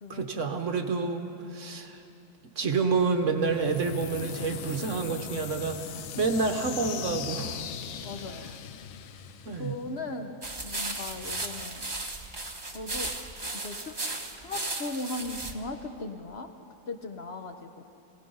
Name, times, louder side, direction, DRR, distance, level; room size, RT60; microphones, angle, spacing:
voice 1, 0.1-2.0 2.6-7.6 9.5-9.7, right 4 dB, 45° right, 6 dB, 1.1 m, -29 dB
sound 1, 3.4-10.3, left 8 dB, 90° left, 1.6 m, -39 dB
voice 2, 8.0-8.5 9.5-11.9 12.7-13.1 13.5-14.0 14.4-16.5 16.9-17.8, left 2 dB, 50° left, 6 dB, 0.7 m, -38 dB
sound 2, 10.4-15.5, right 2 dB, 20° right, 0.8 m, -35 dB
27.0 x 17.5 x 5.5 m, 2.7 s
omnidirectional pair, 2.2 m